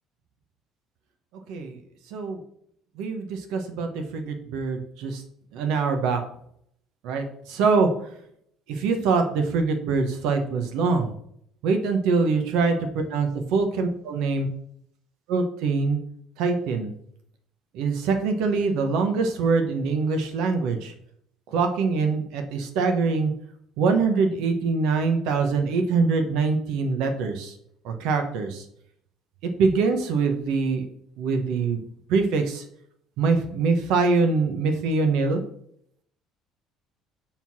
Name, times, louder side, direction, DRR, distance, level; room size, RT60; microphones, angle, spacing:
voice 1, 3.0-5.2 5.5-6.2 7.0-7.9 8.7-11.1 11.6-14.5 15.3-16.0 16.4-16.9 17.7-20.9 21.5-23.3 23.8-27.5 27.8-28.6 29.6-30.8 31.2-31.8 32.1-32.6 33.2-35.4, right 4 dB, 70° right, 6 dB, 1.3 m, -24 dB
7.1 x 3.9 x 6.1 m, 0.69 s
cardioid pair, 170°, 0 cm